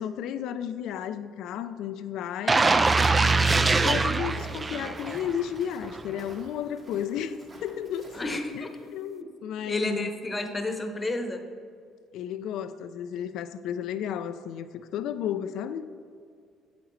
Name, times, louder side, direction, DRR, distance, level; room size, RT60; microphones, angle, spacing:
voice 1, 0.0-2.7 3.8-10.1 12.1-15.9, left 9 dB, 70° left, 11 dB, 0.4 m, -33 dB
sound 1, 2.5-5.4 5.8-6.0, right 3 dB, 25° right, 0.4 m, -23 dB
Walk footsteps, 3.1-8.5, right 1 dB, 45° right, 2.1 m, -50 dB
voice 2, 8.1-8.7 9.7-11.4, left 2 dB, 20° left, 6 dB, 1.0 m, -31 dB
8.0 x 7.9 x 3.2 m, 2.3 s
supercardioid pair, 70°, 0 cm